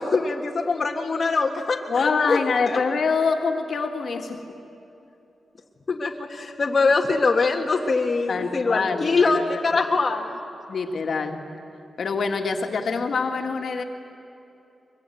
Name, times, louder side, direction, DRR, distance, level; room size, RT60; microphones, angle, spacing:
voice 1, 0.0-2.4 2.7-2.8 5.9-10.4, left 3 dB, 45° left, -1 dB, 1.7 m, -23 dB
voice 2, 1.9-4.6 8.3-9.6 10.7-11.4 12.0-13.8, left 4 dB, 65° left, 4 dB, 2.0 m, -25 dB
23.5 x 23.0 x 9.3 m, 2.8 s
cardioid pair, 85°, 0 cm